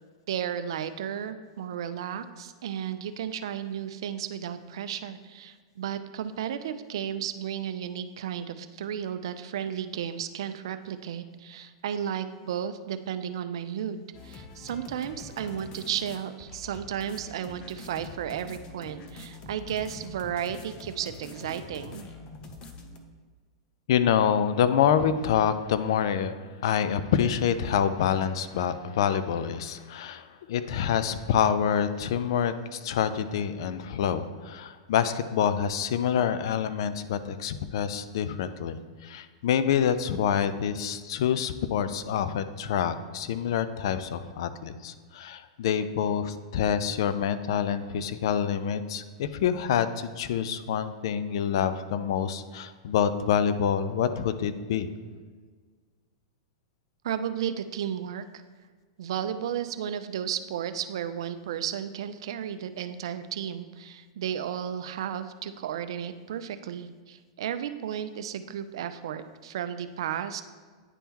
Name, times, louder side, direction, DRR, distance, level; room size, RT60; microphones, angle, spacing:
voice 1, 0.3-22.1 57.0-58.2 59.0-70.4, right 9 dB, 70° right, 11 dB, 0.4 m, -33 dB
sound 1, 14.1-23.0, left 3 dB, 35° left, 0.7 m, -45 dB
voice 2, 23.9-26.3 26.6-54.9, left 8 dB, 65° left, 12 dB, 0.4 m, -27 dB
9.8 x 3.6 x 2.9 m, 1.5 s
hypercardioid pair, 120°, 3 cm